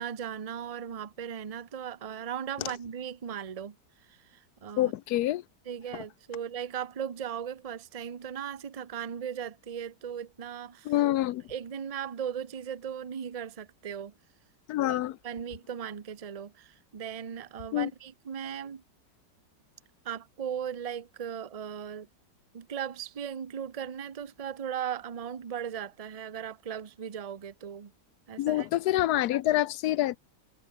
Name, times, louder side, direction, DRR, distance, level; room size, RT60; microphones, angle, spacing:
voice 1, 0.0-3.8 4.1-4.9 5.7-10.9 11.5-14.1 14.8-18.8 20.0-22.1 22.5-27.9 28.3-28.7, right 8 dB, 50° right, 0.4 m, -37 dB
voice 2, 4.8-5.4 5.9-6.0 10.8-11.4 14.7-15.2 17.7-17.9 28.4-30.2, left 14 dB, 70° left, 1.1 m, -27 dB
omnidirectional pair, 1.9 m